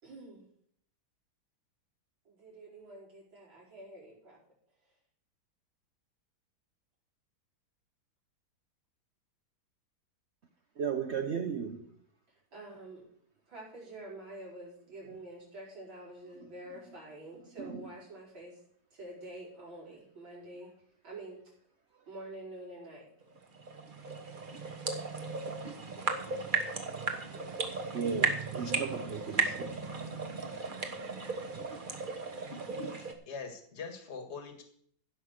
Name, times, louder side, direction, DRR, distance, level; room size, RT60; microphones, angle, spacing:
voice 1, 0.0-0.5 2.3-4.4 4.8-4.9 12.5-13.0 13.5-18.6 18.9-20.7 21.0-21.4 22.1-23.1 28.9-29.3, right 1 dB, 80° right, -4 dB, 5.4 m, -47 dB
voice 2, 10.8-11.9 15.0-15.2 16.4-16.5 17.6-17.9 27.9-29.8 30.3-30.8 31.5-31.7, right 6 dB, 60° right, 7 dB, 0.7 m, -36 dB
sound 1, 23.3-33.1, right 4 dB, 30° right, 1.2 m, -35 dB
voice 3, 32.8-34.6, left 5 dB, 35° left, 6 dB, 1.8 m, -43 dB
16.0 x 5.6 x 6.5 m, 0.63 s
omnidirectional pair, 2.1 m